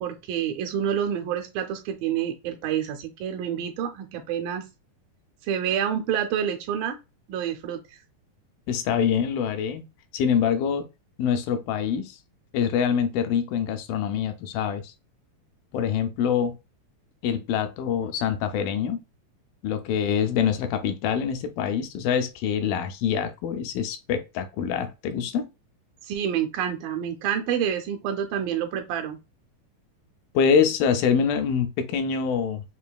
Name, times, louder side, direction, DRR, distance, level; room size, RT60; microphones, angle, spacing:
voice 1, 0.0-4.7 5.5-7.0 7.3-7.8 26.0-29.2, right 9 dB, 80° right, 2.3 m, -28 dB
voice 2, 8.7-9.8 10.1-10.9 11.2-12.2 12.5-14.9 15.7-16.6 17.2-19.0 19.6-25.5 30.3-32.6, left 7 dB, 80° left, 2.3 m, -25 dB
5.7 x 2.5 x 2.3 m
omnidirectional pair, 4.2 m